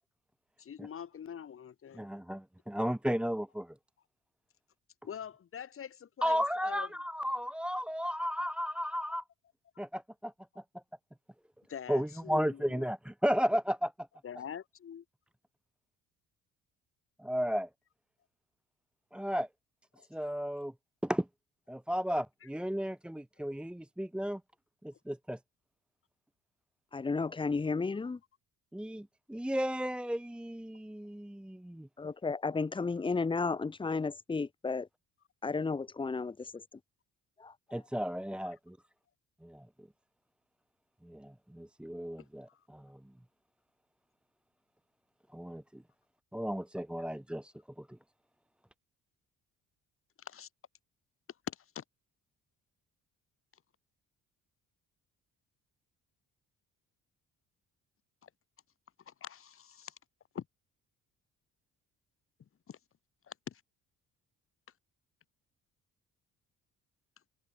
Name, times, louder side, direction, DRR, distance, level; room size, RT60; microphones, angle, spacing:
voice 1, 0.6-2.1 5.0-6.9 11.7-12.9 14.2-15.0 20.0-20.1 42.5-42.6 50.2-50.5 51.5-51.8 58.2-58.3 59.1-60.0 60.3-60.5 62.7-62.8 63.3-63.6, left 8 dB, 45° left, 3.7 m, -44 dB
voice 2, 1.9-3.7 6.2-9.2 9.8-10.3 10.7-10.8 11.9-13.9 17.2-17.7 19.1-19.5 20.1-20.7 21.0-21.3 21.7-24.4 24.8-25.4 28.7-31.9 37.7-38.8 39.4-39.9 41.0-43.0 45.3-45.8 46.3-48.0, equal, 5° right, 1.5 m, -34 dB
voice 3, 26.9-28.2 32.0-34.9 35.4-36.6 37.4-37.8, left 4 dB, 15° left, 1.1 m, -33 dB
cardioid pair, 135°, 31 cm